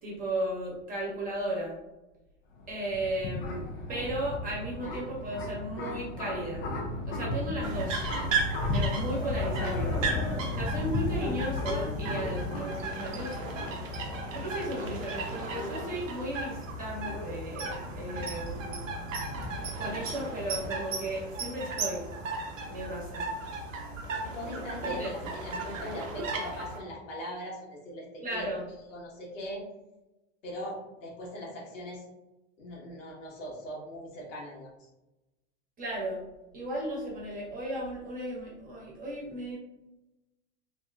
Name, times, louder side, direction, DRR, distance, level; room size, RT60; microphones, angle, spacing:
voice 1, 0.0-1.8 2.7-6.7 7.0-8.0 8.7-10.0 10.5-13.4 14.3-18.8 19.8-22.1 22.7-23.3 24.8-25.1 28.2-28.6 35.8-36.2 36.5-39.6, right 1 dB, 25° right, -5 dB, 1.0 m, -35 dB
sound 1, 2.5-20.7, left 2 dB, 30° left, 0.5 m, -35 dB
sound 2, 7.6-26.8, right 3 dB, 80° right, 0.7 m, -36 dB
voice 2, 24.3-28.5 28.9-29.6 30.4-32.0 32.6-34.7, equal, 80° left, -4 dB, 1.3 m, -40 dB
2.8 x 2.2 x 2.3 m, 0.98 s
hypercardioid pair, 105°, 38 cm